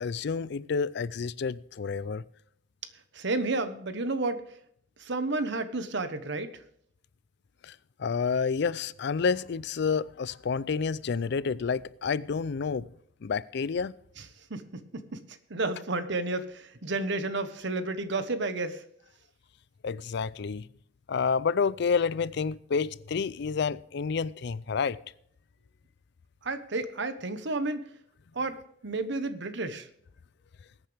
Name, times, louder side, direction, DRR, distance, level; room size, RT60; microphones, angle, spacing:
voice 1, 0.0-2.2 8.0-12.9 13.2-13.9 19.8-20.6 21.1-25.0, left 5 dB, 60° left, 0.4 m, -29 dB
voice 2, 3.1-4.5 5.0-6.6 14.2-15.2 15.5-18.8 26.4-27.9 28.3-29.9, right 2 dB, 70° right, 1.1 m, -31 dB
20.5 x 8.9 x 3.4 m
head